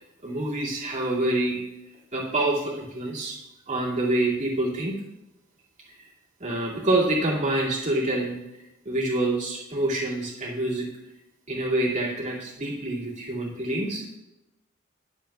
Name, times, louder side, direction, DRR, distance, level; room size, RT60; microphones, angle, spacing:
voice 1, 0.0-1.6 2.1-3.4 3.7-5.0 5.9-6.0 6.4-10.9 11.5-14.0, right 1 dB, 35° right, -4 dB, 2.3 m, -27 dB
20.0 x 7.0 x 2.3 m, 0.95 s
head